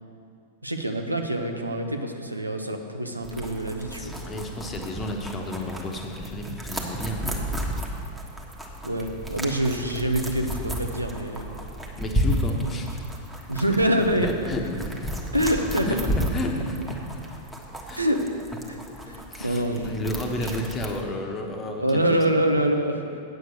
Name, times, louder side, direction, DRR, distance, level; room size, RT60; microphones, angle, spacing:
voice 1, 0.6-4.2 8.8-11.5 13.5-14.3 15.3-16.1 17.9-18.3 18.7-18.8 19.1-20.0 20.4-20.5 21.8-23.2, right 1 dB, 85° right, 4 dB, 0.8 m, -25 dB
sound 1, 3.2-21.0, equal, ahead, 1.3 m, -33 dB
voice 2, 4.0-7.3 12.0-13.0 14.2-15.1 15.8-17.1 17.8-18.0 19.0-22.1, left 1 dB, 25° left, 2 dB, 1.2 m, -32 dB
8.6 x 7.9 x 6.6 m, 2.4 s
figure-of-eight pair, 90°, 0 cm